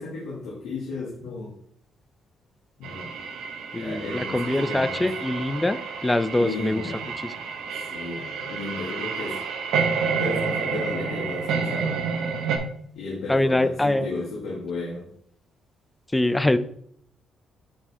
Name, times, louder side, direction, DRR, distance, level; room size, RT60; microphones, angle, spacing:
voice 1, 0.0-1.5 2.8-3.1 3.8-5.1 6.4-7.1 7.8-9.4 10.2-12.1 12.9-15.1, left 3 dB, 90° left, -5 dB, 2.1 m, -34 dB
sound 1, 2.8-12.6, right 5 dB, 85° right, 1.2 m, -29 dB
voice 2, 3.7-6.9 7.2-7.3 13.3-14.1 16.1-16.6, left 1 dB, 10° left, 12 dB, 0.5 m, -23 dB
8.9 x 4.7 x 3.6 m, 0.66 s
cardioid pair, 90°, 0 cm